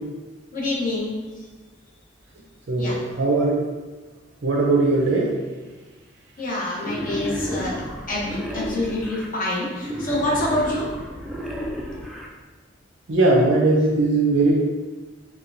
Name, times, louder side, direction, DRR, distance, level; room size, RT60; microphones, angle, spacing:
voice 1, 0.5-1.5 2.8-3.0 6.4-7.8 8.1-10.9, left 1 dB, 45° left, -4 dB, 0.8 m, -26 dB
voice 2, 2.7-3.6 4.4-5.3 13.1-14.6, right 2 dB, 70° right, -2 dB, 0.6 m, -19 dB
Wild animals, 6.8-9.3 9.8-12.3, equal, ahead, 0.3 m, -31 dB
4.2 x 2.3 x 2.6 m, 1.3 s
head